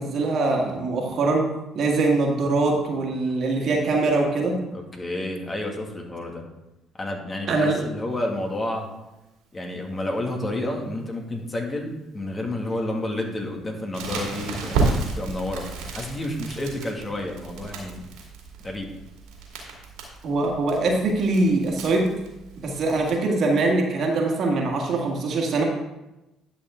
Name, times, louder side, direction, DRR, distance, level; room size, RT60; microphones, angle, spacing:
voice 1, 0.0-4.6 7.5-7.9 20.2-22.1 22.6-25.6, right 3 dB, 60° right, 1 dB, 2.0 m, -23 dB
voice 2, 4.7-6.5 6.9-8.9 9.5-15.7 15.9-18.1 18.6-18.9, left 1 dB, 30° left, 1 dB, 2.1 m, -30 dB
Crackle, 13.9-23.1, right 3 dB, 85° right, 2.4 m, -32 dB
11.0 x 6.0 x 3.7 m, 0.97 s
supercardioid pair, 70°, 0 cm